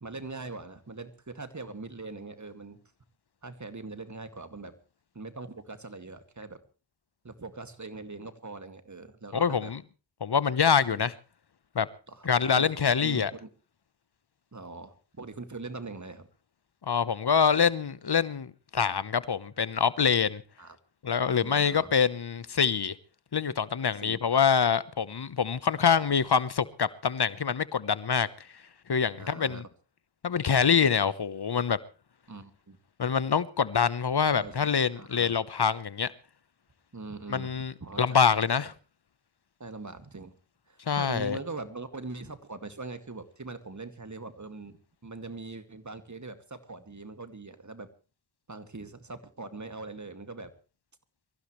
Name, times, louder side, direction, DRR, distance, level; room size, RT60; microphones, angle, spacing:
voice 1, 0.0-2.8 3.4-4.7 5.1-6.6 7.2-9.7 10.9-11.0 12.1-12.3 12.5-12.7 13.0-13.5 14.5-16.3 20.6-20.8 21.4-21.9 24.0-24.5 29.2-29.6 32.3-32.8 34.3-34.7 35.0-35.3 36.9-38.2 38.6-38.7 39.6-40.3 40.7-44.8 45.0-47.9 48.5-50.5, right 3 dB, 40° right, 2.3 m, -42 dB
voice 2, 9.3-9.8 10.2-11.1 11.7-11.9 12.2-13.3 16.9-20.4 21.0-22.9 23.3-28.3 28.9-29.6 30.2-31.8 33.0-36.1 37.3-38.7 40.9-41.4, left 6 dB, 55° left, 1.0 m, -25 dB
24.0 x 15.0 x 3.2 m
cardioid pair, 45°, 46 cm